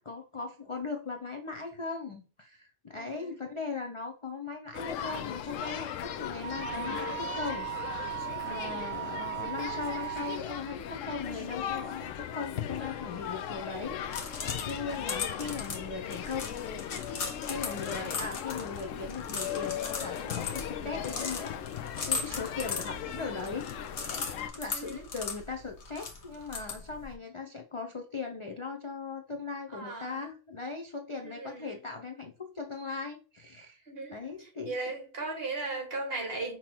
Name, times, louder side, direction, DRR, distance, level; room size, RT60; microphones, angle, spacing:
voice 1, 0.0-14.0 14.3-16.5 17.4-23.7 24.5-34.9, left 4 dB, 40° left, 0.5 m, -39 dB
voice 2, 2.9-3.4 14.7-15.1 24.7-25.1 29.7-30.2 31.2-31.8 33.9-36.6, right 3 dB, 50° right, 1.9 m, -38 dB
sound 1, 4.7-24.5, left 9 dB, 85° left, 0.9 m, -38 dB
Wind instrument woodwind instrument, 6.4-10.4, right 13 dB, 85° right, 0.9 m, -37 dB
sound 2, 13.8-27.1, left 5 dB, 65° left, 1.3 m, -39 dB
5.7 x 3.0 x 2.8 m
omnidirectional pair, 1.3 m